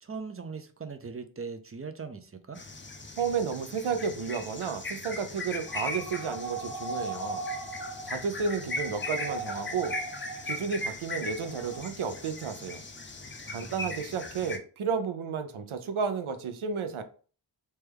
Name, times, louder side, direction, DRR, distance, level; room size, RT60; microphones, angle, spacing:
voice 1, 0.0-2.6 13.4-13.9, right 5 dB, 30° right, 0.4 m, -40 dB
sound 1, 2.6-14.6, left 2 dB, 25° left, 0.5 m, -38 dB
voice 2, 3.2-7.4 8.0-10.0 10.4-12.8 13.5-17.0, right 6 dB, 85° right, 0.6 m, -32 dB
sound 2, 5.7-10.8 11.3-11.8, right 2 dB, 60° left, 0.9 m, -38 dB
3.2 x 2.2 x 3.3 m
wide cardioid pair, 75°, 48 cm